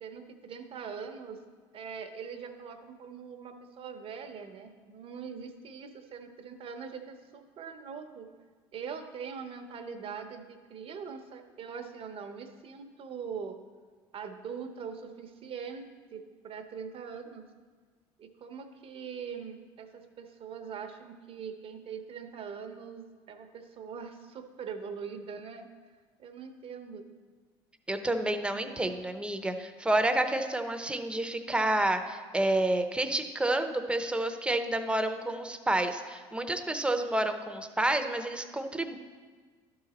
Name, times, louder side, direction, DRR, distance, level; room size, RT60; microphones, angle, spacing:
voice 1, 0.0-1.4 1.7-8.3 8.7-13.6 14.1-17.5 18.2-25.9 26.2-27.1, right 6 dB, 50° right, 7 dB, 0.8 m, -42 dB
voice 2, 27.9-39.0, right 1 dB, 10° right, 7 dB, 0.7 m, -29 dB
12.0 x 4.0 x 4.2 m, 1.5 s
supercardioid pair, 80°, 12 cm